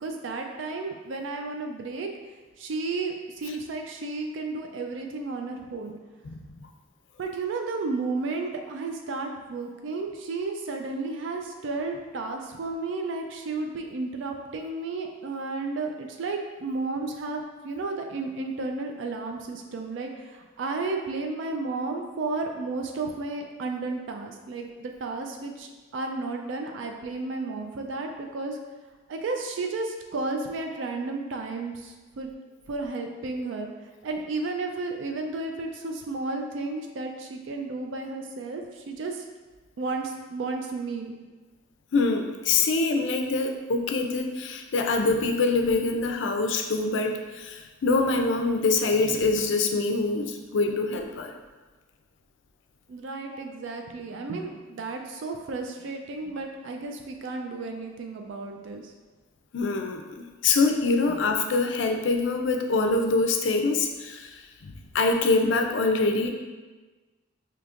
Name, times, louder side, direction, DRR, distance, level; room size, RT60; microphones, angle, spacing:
voice 1, 0.0-2.1 2.6-6.0 7.2-28.6 29.1-32.3 32.7-33.7 34.0-39.2 39.8-41.2 52.9-58.9 61.1-61.2, right 3 dB, 70° right, 3 dB, 0.4 m, -33 dB
voice 2, 6.3-6.7 41.9-51.3 59.5-66.3, left 3 dB, 65° left, 4 dB, 0.4 m, -25 dB
5.0 x 2.8 x 2.4 m, 1.3 s
head